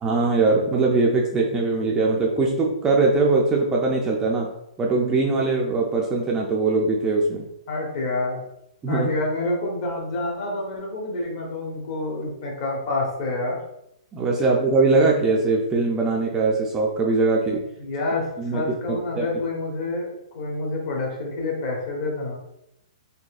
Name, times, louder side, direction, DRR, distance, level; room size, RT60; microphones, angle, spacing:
voice 1, 0.0-4.5 4.8-7.5 8.8-9.1 14.1-17.6 18.4-19.3, right 3 dB, 15° right, -1 dB, 0.3 m, -21 dB
voice 2, 7.7-8.4 8.9-13.6 17.8-22.3, left 2 dB, 45° left, -1 dB, 1.1 m, -28 dB
4.0 x 2.6 x 2.4 m, 0.82 s
hypercardioid pair, 160°, 4 cm